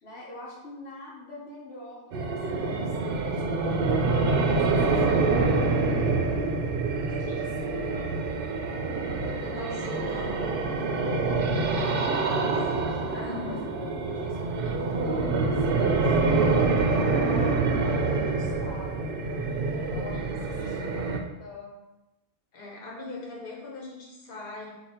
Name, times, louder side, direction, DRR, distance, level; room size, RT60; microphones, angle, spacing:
voice 1, 0.0-6.2 6.9-7.9 10.0-10.8 11.1-11.9 12.2-16.5 16.9-21.7, left 1 dB, 80° left, -4 dB, 1.2 m, -44 dB
sound 1, 2.1-21.2, right 3 dB, 65° right, 0.7 m, -26 dB
voice 2, 7.2-7.5 9.4-10.5 12.3-12.6 13.1-13.6 15.4-15.9 20.1-20.2 20.5-20.9 22.5-24.8, left 2 dB, 55° left, -3 dB, 1.1 m, -41 dB
4.0 x 2.6 x 4.2 m, 0.98 s
omnidirectional pair, 1.1 m